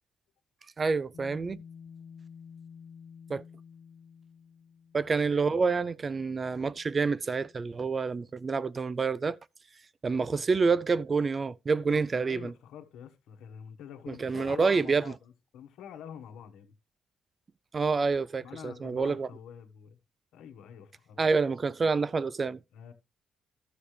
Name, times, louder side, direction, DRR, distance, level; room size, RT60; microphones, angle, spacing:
voice 1, 0.8-1.6 3.3-3.4 4.9-9.4 10.0-12.5 14.1-15.0 17.7-19.3 21.2-22.6, right 4 dB, 35° right, 0.4 m, -28 dB
sound 1, 1.1-7.9, left 6 dB, 70° left, 1.0 m, -52 dB
voice 2, 11.8-16.7 18.4-20.0 20.3-21.2 22.7-22.9, left 8 dB, 85° left, 1.3 m, -46 dB
13.0 x 6.8 x 3.3 m
cardioid pair, 90°, 0 cm